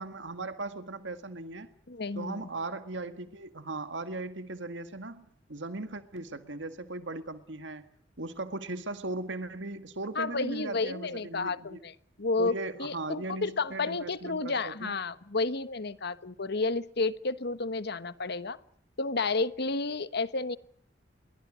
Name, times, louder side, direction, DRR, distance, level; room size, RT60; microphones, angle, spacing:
voice 1, 0.0-1.7 2.2-7.9 8.2-11.8 12.4-14.9, right 2 dB, 70° right, 10 dB, 1.9 m, -38 dB
voice 2, 1.9-2.5 10.1-11.9 12.2-18.6 19.0-20.6, left 3 dB, 60° left, 14 dB, 1.3 m, -31 dB
28.0 x 23.0 x 6.3 m, 0.65 s
head